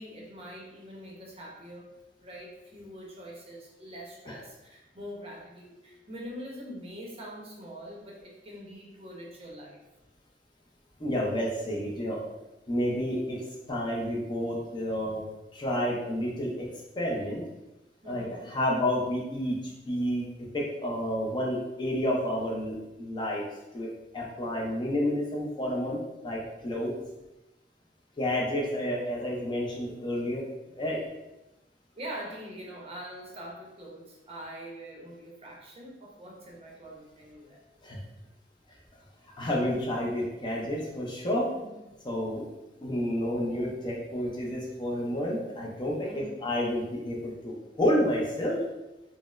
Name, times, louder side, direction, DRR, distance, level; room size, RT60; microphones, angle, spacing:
voice 1, 0.0-1.9 2.2-9.8 18.0-18.5 31.9-37.6 41.5-41.8 46.0-46.4, equal, 35° right, -3 dB, 0.7 m, -44 dB
voice 2, 11.0-12.2 12.7-13.4 13.7-15.2 15.5-16.7 17.0-17.4 18.1-19.6 19.9-20.3 20.5-23.4 23.7-26.0 26.2-26.9 28.2-30.4 30.7-31.0 37.8-38.0 39.4-41.5 42.0-42.5 42.8-46.1 46.4-48.6, equal, 25° left, -3 dB, 0.5 m, -30 dB
4.0 x 2.0 x 2.4 m, 0.99 s
head